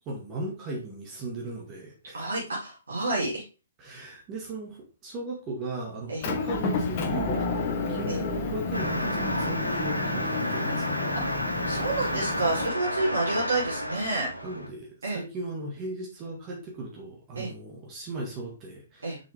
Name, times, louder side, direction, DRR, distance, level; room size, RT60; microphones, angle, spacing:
voice 1, 0.1-2.3 3.8-4.8 5.0-11.0 14.4-19.1, right 2 dB, 25° right, -1 dB, 2.1 m, -37 dB
voice 2, 2.1-3.4 6.1-6.3 8.1-8.2 11.7-14.3 15.0-15.2 17.4-17.5 19.0-19.2, right 2 dB, 65° right, -6 dB, 3.5 m, -29 dB
Motor vehicle (road) / Engine, 6.2-12.7, left 3 dB, 35° left, 1.5 m, -31 dB
sound 1, 8.7-14.7, equal, 90° right, 1.5 m, -31 dB
6.3 x 6.1 x 3.6 m, 0.32 s
figure-of-eight pair, 125°, 0 cm